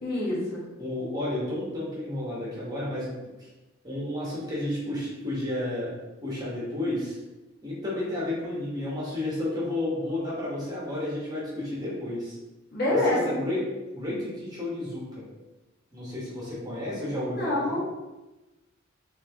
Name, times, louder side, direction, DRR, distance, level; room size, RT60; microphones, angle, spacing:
voice 1, 0.0-0.6 12.7-13.4 17.4-17.8, left 1 dB, 55° left, -6 dB, 1.4 m, -26 dB
voice 2, 0.8-3.1 3.8-5.9 6.2-7.2 7.6-12.4 12.9-15.2 15.9-17.8, left 1 dB, 20° right, -6 dB, 1.3 m, -32 dB
4.5 x 3.4 x 2.9 m, 1.1 s
head